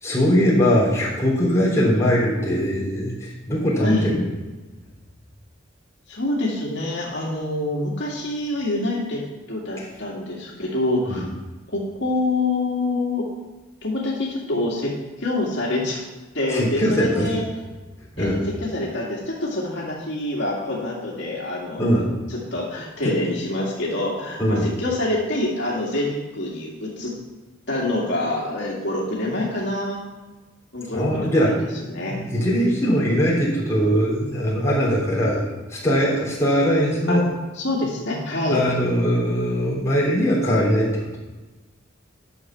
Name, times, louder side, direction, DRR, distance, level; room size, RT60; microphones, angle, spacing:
voice 1, 0.0-4.3 9.8-9.9 11.1-11.3 16.5-17.3 18.2-18.4 21.8-22.1 24.4-24.7 30.9-31.6 32.0-35.4 35.7-37.3 38.5-41.2, equal, 15° left, -6 dB, 3.3 m, -21 dB
voice 2, 3.8-4.2 6.1-9.2 9.5-11.2 11.7-13.2 13.8-16.0 16.3-17.4 18.2-27.1 27.7-30.0 30.7-31.5 31.9-32.2 32.6-32.9 37.1-37.2 37.6-38.6, left 2 dB, 60° left, -4 dB, 2.3 m, -26 dB
11.0 x 6.8 x 6.0 m, 1.2 s
head